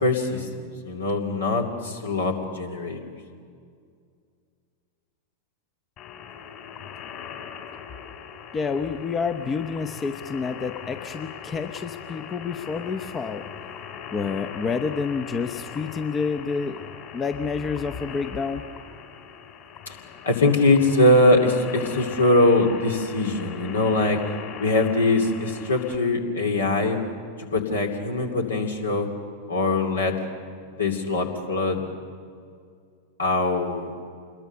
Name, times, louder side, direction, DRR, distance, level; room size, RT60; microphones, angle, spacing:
voice 1, 0.0-3.1 19.9-20.0 20.2-24.2 24.6-27.0 27.4-29.1 29.5-30.2 30.8-31.8 33.2-34.0, left 2 dB, 70° left, 3 dB, 2.8 m, -22 dB
sound 1, 6.0-26.0, left 7 dB, 40° left, 4.2 m, -40 dB
voice 2, 8.5-13.5 14.1-16.8 17.1-18.6, left 5 dB, 20° left, 8 dB, 0.9 m, -28 dB
27.0 x 21.5 x 6.7 m, 2.2 s
figure-of-eight pair, 90°, 0 cm